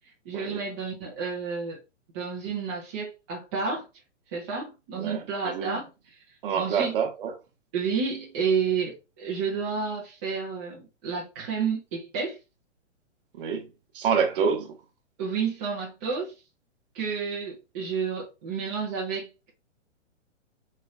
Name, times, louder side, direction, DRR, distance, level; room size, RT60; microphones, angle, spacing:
voice 1, 0.3-1.8 2.1-3.8 4.3-5.9 6.6-7.0 7.7-12.4 15.2-16.3 16.9-19.5, right 5 dB, 15° right, 0.4 m, -30 dB
voice 2, 5.0-5.8 6.4-7.3 13.4-13.7 13.9-14.7, right 6 dB, 45° right, 0.9 m, -27 dB
3.2 x 3.0 x 2.4 m
hypercardioid pair, 130°, 37 cm